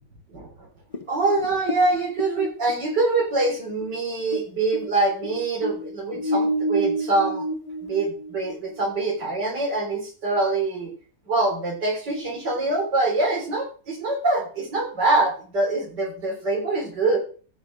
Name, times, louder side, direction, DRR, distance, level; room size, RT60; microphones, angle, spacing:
voice 1, 0.3-0.7 1.1-7.4 7.8-10.9 11.3-17.2, right 2 dB, 80° right, 1 dB, 4.3 m, -24 dB
sound 1, 0.9-4.5 4.7-8.9, equal, 30° left, 0.7 m, -29 dB
14.5 x 5.7 x 6.2 m, 0.41 s
omnidirectional pair, 1.8 m